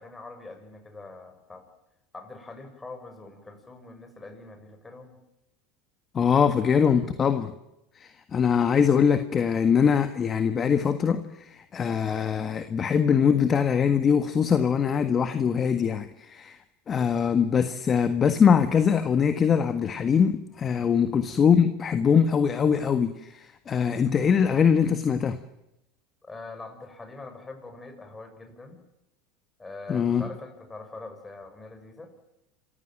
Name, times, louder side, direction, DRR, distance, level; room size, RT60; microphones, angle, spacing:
voice 1, 0.0-1.6 2.1-5.2 26.2-28.8 29.6-32.1, left 3 dB, 15° left, 6 dB, 6.4 m, -43 dB
voice 2, 6.1-7.5 7.9-16.6 16.9-25.4 29.9-30.2, left 7 dB, 30° left, 10 dB, 1.6 m, -22 dB
27.5 x 15.5 x 9.0 m, 0.90 s
hypercardioid pair, 90°, 0 cm